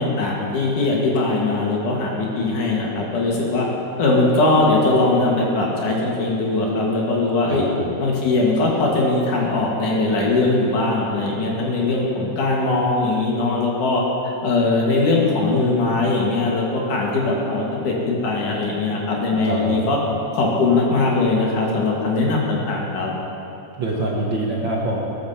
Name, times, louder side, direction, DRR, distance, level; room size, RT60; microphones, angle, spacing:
voice 1, 0.0-3.7 4.0-7.7 8.0-20.0 20.3-23.1, left 2 dB, 75° left, -2 dB, 3.6 m, -20 dB
voice 2, 7.5-7.9 19.1-19.2 19.5-19.9 23.8-25.0, right 2 dB, 50° right, -3 dB, 1.6 m, -25 dB
19.0 x 7.8 x 7.2 m, 2.9 s
omnidirectional pair, 3.6 m